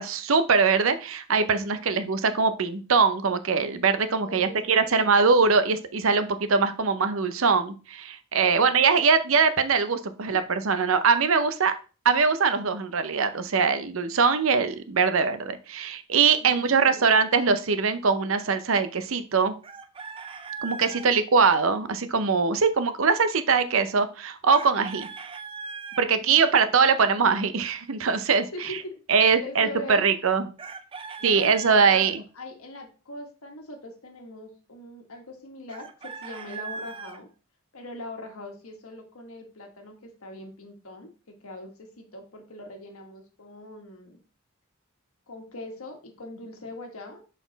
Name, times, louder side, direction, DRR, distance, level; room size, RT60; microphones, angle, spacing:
voice 1, 0.0-11.7 12.0-19.6 20.6-25.1 26.0-28.5 29.1-30.5 31.2-32.2, right 5 dB, 65° right, 11 dB, 0.7 m, -22 dB
voice 2, 4.2-5.1 8.4-8.7 10.2-10.4 16.4-17.1 20.8-21.1 26.0-26.2 26.4-27.0 28.5-30.1 31.2-37.3 37.7-44.2 45.3-47.2, left 1 dB, 80° left, 3 dB, 1.4 m, -42 dB
Chicken rooster, 19.6-21.1 24.5-26.1 30.6-32.1 35.7-37.2, right 5 dB, 25° right, 0.4 m, -39 dB
6.1 x 4.2 x 3.9 m, 0.34 s
head